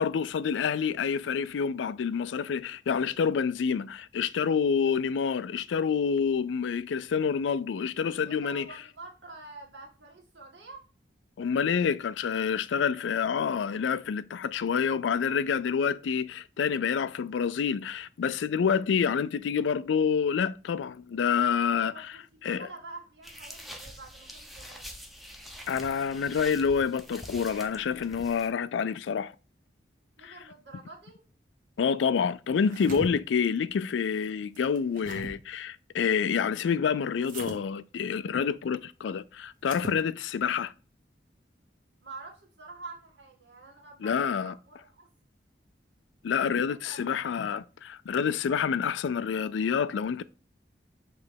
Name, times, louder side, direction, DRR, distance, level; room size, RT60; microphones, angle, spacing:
voice 1, 0.0-8.7 11.4-21.9 22.4-22.7 25.7-29.3 30.2-30.3 31.8-40.7 44.0-44.5 46.2-50.2, left 6 dB, 90° left, 0.4 m, -28 dB
voice 2, 8.2-10.9 21.9-24.9 30.2-31.2 42.0-45.1 46.5-47.0, right 3 dB, 80° right, 1.9 m, -47 dB
sound 1, 23.2-28.5, equal, ahead, 0.6 m, -45 dB
sound 2, 32.5-33.1 34.6-35.3 37.2-37.6 39.6-40.0, right 2 dB, 45° right, 1.2 m, -40 dB
6.0 x 3.2 x 5.1 m
head